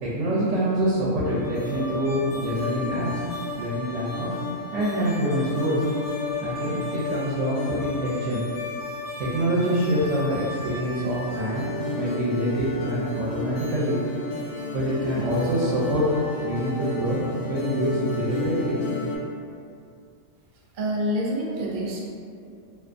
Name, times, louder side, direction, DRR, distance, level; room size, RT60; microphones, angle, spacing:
voice 1, 0.0-3.2 3.6-4.3 4.7-5.8 6.4-8.4 9.2-11.7 11.9-14.0 14.7-16.1 16.4-17.2 17.5-18.8, equal, 75° right, -6 dB, 0.9 m, -25 dB
sound 1, 1.2-19.2, left 3 dB, 60° left, 0.6 m, -33 dB
voice 2, 20.7-22.0, equal, 55° right, -4 dB, 0.6 m, -27 dB
3.4 x 2.4 x 2.5 m, 2.4 s
omnidirectional pair, 1.3 m